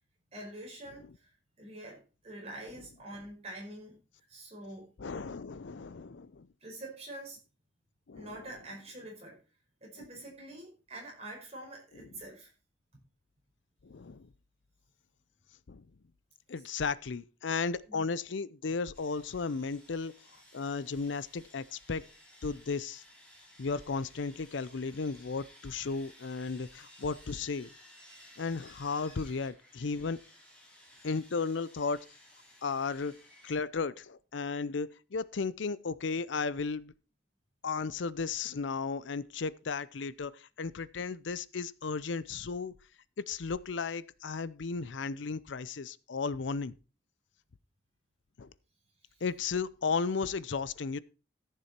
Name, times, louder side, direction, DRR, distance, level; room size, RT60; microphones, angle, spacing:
voice 1, 0.3-4.0 4.3-4.8 6.6-7.4 8.1-9.4 9.8-12.5 17.9-18.0, right 1 dB, 35° right, 5.0 m, -46 dB
voice 2, 5.0-6.5 8.1-8.3 13.8-14.3 15.7-15.8 16.5-20.1 20.5-22.1 22.4-23.0 23.6-27.7 28.4-30.2 31.0-32.1 32.6-33.1 33.4-36.9 37.6-42.7 43.3-46.8 48.4-48.5 49.2-51.0, left 4 dB, 75° left, 0.6 m, -34 dB
Sawing, 18.9-33.6, equal, 5° left, 3.6 m, -57 dB
14.5 x 6.9 x 4.4 m
head